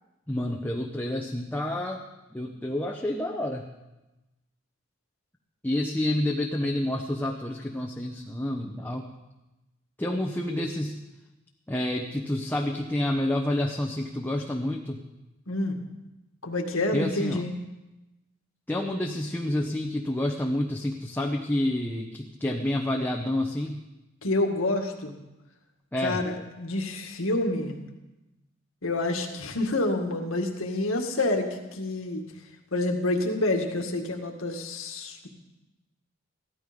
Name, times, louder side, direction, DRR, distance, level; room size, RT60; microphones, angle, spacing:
voice 1, 0.3-2.0 2.3-3.7 5.6-9.1 10.0-10.9 11.7-15.0 16.9-17.4 18.7-23.8 25.9-26.2, left 1 dB, 10° left, 1 dB, 0.9 m, -29 dB
voice 2, 15.5-15.8 16.4-17.5 24.2-25.1 26.0-27.8 28.8-32.2 32.7-35.3, left 2 dB, 85° left, 3 dB, 2.0 m, -28 dB
16.0 x 13.0 x 5.3 m, 1.0 s
head